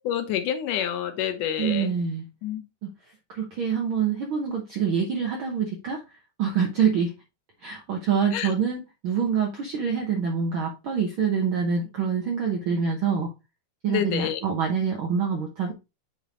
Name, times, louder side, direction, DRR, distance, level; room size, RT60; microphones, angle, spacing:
voice 1, 0.0-1.9 2.4-2.6 8.3-8.5 13.9-14.4, left 10 dB, 85° left, 8 dB, 2.4 m, -28 dB
voice 2, 1.6-2.2 2.8-2.9 3.3-6.0 6.4-7.1 7.6-13.3 13.8-15.7, right 6 dB, 75° right, 2 dB, 1.2 m, -26 dB
7.8 x 3.4 x 3.8 m, 0.26 s
omnidirectional pair, 3.6 m